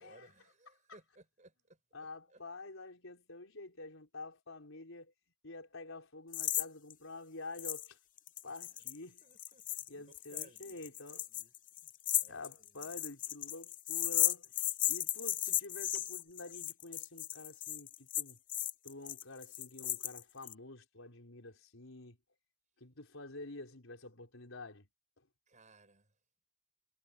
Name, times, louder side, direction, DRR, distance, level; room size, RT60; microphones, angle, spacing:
voice 1, 0.0-1.8 2.3-2.4 8.5-8.9 9.2-11.5 11.8-11.9 12.2-12.9 25.5-26.1, right 2 dB, 35° right, 7.0 m, -62 dB
voice 2, 1.9-5.1 5.4-8.0 8.4-9.2 9.9-11.3 12.3-14.5 14.9-18.4 18.8-22.2 22.8-24.9, left 2 dB, 75° left, 4.4 m, -48 dB
sound 1, 6.3-6.7 6.9-7.0 7.6-7.9 8.2-20.5, left 13 dB, 40° left, 0.7 m, -35 dB
head